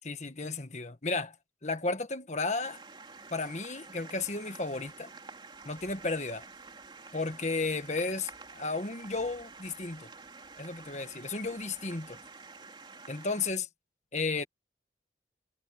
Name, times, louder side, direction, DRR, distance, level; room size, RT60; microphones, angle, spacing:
voice 1, 0.0-1.4 1.6-2.8 3.3-5.1 5.6-6.5 7.1-10.1 10.6-12.2 13.1-13.7 14.1-14.4, left 3 dB, 40° left, 1.5 m, -33 dB
sound 1, 2.6-13.5, right 4 dB, 25° right, 3.4 m, -49 dB
head